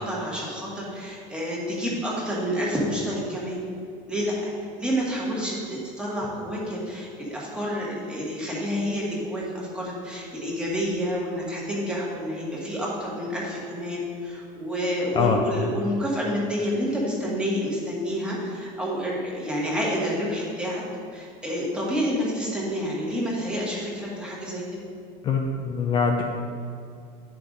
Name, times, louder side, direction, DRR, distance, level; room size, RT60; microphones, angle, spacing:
voice 1, 0.0-3.6 4.1-4.5 4.8-20.8 21.1-24.6, equal, 5° right, -5 dB, 1.7 m, -29 dB
voice 2, 25.2-26.2, left 5 dB, 30° left, 1 dB, 0.5 m, -23 dB
9.9 x 5.7 x 3.9 m, 2.3 s
cardioid pair, 160°, 16 cm